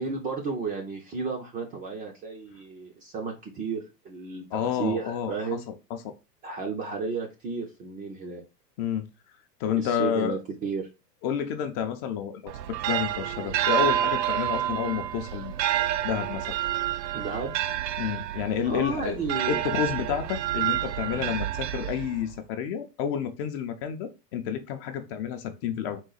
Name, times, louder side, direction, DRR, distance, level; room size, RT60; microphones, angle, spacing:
voice 1, 0.0-5.6 6.4-8.4 9.7-10.9 17.1-17.5 18.6-19.6, right 4 dB, 20° right, 2 dB, 0.4 m, -33 dB
voice 2, 4.5-6.1 8.8-9.1 9.6-10.4 11.2-15.5 16.0-16.6 18.0-19.2 19.5-26.0, left 8 dB, 35° left, 7 dB, 0.5 m, -30 dB
sound 1, 12.5-22.4, right 12 dB, 80° right, 0.6 m, -29 dB
4.0 x 2.3 x 3.9 m, 0.28 s
hypercardioid pair, 120°, 50 cm